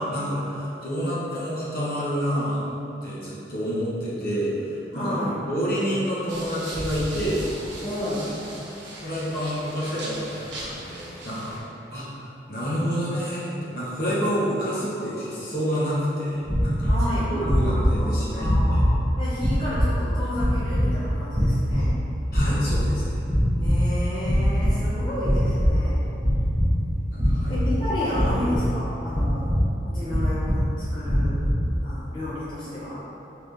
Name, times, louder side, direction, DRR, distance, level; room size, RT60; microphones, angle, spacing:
voice 1, 0.0-2.7 3.0-5.2 5.4-7.5 8.0-8.2 9.0-11.5 11.9-16.9 17.3-18.8 22.3-23.2 27.1-27.6, equal, 55° left, -8 dB, 0.9 m, -28 dB
voice 2, 4.9-5.4 7.8-8.3 16.9-21.9 23.6-26.1 26.9-27.2 27.5-29.6 29.8-31.5 31.8-33.0, left 1 dB, 25° left, -11 dB, 0.6 m, -31 dB
sound 1, 6.3-11.6, right 1 dB, 85° right, 0.7 m, -37 dB
sound 2, 16.4-17.1 17.4-18.0 18.4-19.0 19.4-20.0 20.3-20.9 21.3-22.0 22.3-22.9 23.2-23.9 24.2-24.8 25.2-25.8 26.2-26.7 27.1-27.7 28.1-28.7 29.1-29.7 30.1-30.6 31.0-31.6, equal, 5° right, 1.1 m, -22 dB
3.7 x 2.9 x 3.3 m, 3.0 s
head